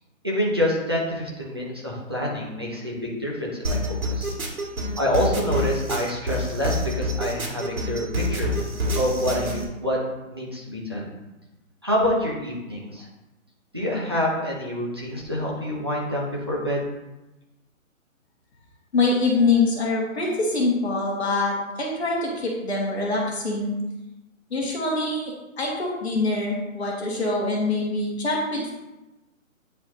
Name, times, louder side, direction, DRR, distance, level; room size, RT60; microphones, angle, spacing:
voice 1, 0.2-4.3 5.0-8.5 8.9-10.0 10.3-11.1 11.8-13.1 13.7-16.8, left 1 dB, 20° right, -5 dB, 0.7 m, -27 dB
sound 1, 3.6-9.6, equal, 80° right, 2.4 m, -27 dB
voice 2, 18.9-23.7 24.5-28.7, left 3 dB, 50° left, -3 dB, 1.8 m, -24 dB
9.3 x 4.7 x 2.9 m, 1.0 s
hypercardioid pair, 175°, 41 cm